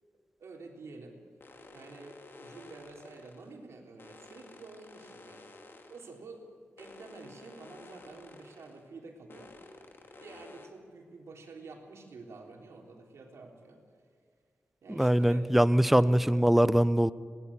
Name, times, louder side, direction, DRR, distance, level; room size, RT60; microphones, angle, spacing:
voice 1, 0.4-1.2 1.7-5.4 5.9-6.5 6.8-9.5 10.2-13.8 14.8-15.5 16.0-16.3, right 3 dB, 90° right, 1 dB, 4.0 m, -49 dB
sound 1, 1.4-3.6 4.0-6.2 6.8-8.9 9.3-10.7, left 2 dB, 55° left, 2.5 m, -52 dB
voice 2, 15.0-17.1, equal, 5° right, 15 dB, 0.6 m, -23 dB
22.5 x 18.5 x 8.8 m, 2.1 s
wide cardioid pair, 110°, 5 cm